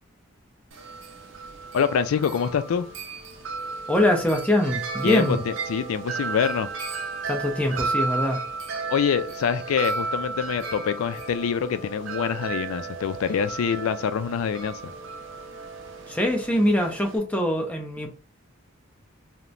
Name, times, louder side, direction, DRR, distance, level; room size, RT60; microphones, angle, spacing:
Wind chime, 0.7-17.2, right 4 dB, 65° right, 0.6 m, -34 dB
voice 1, 1.7-2.9 5.0-6.7 8.9-14.8, left 7 dB, 90° left, 0.3 m, -25 dB
voice 2, 3.9-5.4 7.3-8.4 16.1-18.1, left 1 dB, 5° left, 0.6 m, -23 dB
2.9 x 2.1 x 2.4 m
head